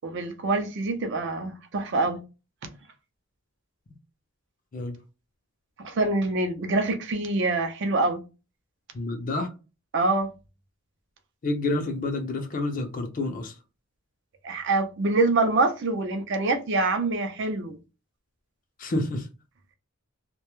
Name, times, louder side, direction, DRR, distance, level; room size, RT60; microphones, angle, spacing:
voice 1, 0.0-2.2 2.6-2.7 5.8-8.2 9.9-10.3 14.4-17.8, right 2 dB, 55° right, 0.5 m, -25 dB
voice 2, 8.9-9.5 11.4-13.5 18.8-19.3, left 2 dB, 40° left, 0.5 m, -28 dB
2.2 x 2.0 x 2.9 m
head